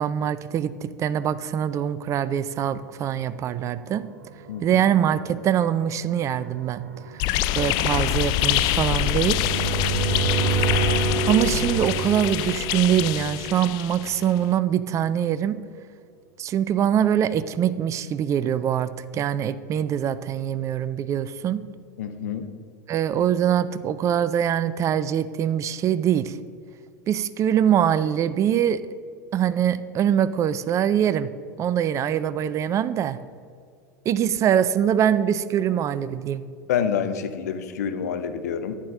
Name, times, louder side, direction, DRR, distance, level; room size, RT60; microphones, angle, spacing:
voice 1, 0.0-4.0 4.6-6.8 7.1-7.2 7.5-9.4 11.3-15.6 16.4-21.6 22.9-26.4 27.1-28.8 29.3-31.3 31.6-33.2 34.1-36.4, right 9 dB, 35° right, 15 dB, 0.5 m, -23 dB
sound 1, 3.6-14.4, right 6 dB, 65° right, 1.3 m, -30 dB
voice 2, 4.5-4.8 22.0-22.5 36.7-38.8, left 7 dB, 65° left, 9 dB, 0.8 m, -27 dB
sound 2, 7.2-14.2, left 15 dB, 45° left, 0.3 m, -25 dB
11.5 x 8.9 x 3.7 m, 2.3 s
figure-of-eight pair, 80°, 9 cm